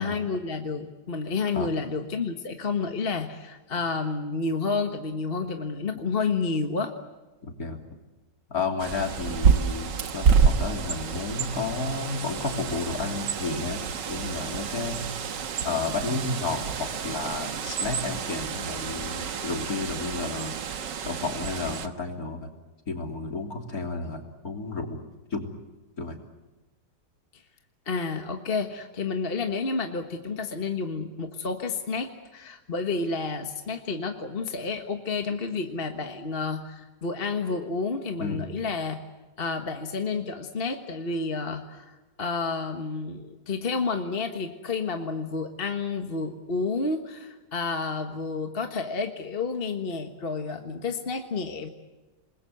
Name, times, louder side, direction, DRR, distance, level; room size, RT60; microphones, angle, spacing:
voice 1, 0.0-6.9 27.3-27.4 27.8-39.0 39.4-51.7, left 4 dB, 35° left, 5 dB, 1.6 m, -30 dB
voice 2, 8.5-15.0 15.6-20.6 21.1-22.5 22.9-25.0 25.3-25.5 26.0-26.2 38.2-38.5, left 3 dB, 50° left, 4 dB, 3.6 m, -32 dB
Bird, 8.8-21.9, right 6 dB, 75° right, 2.0 m, -28 dB
28.0 x 21.5 x 8.0 m, 1.2 s
omnidirectional pair, 1.9 m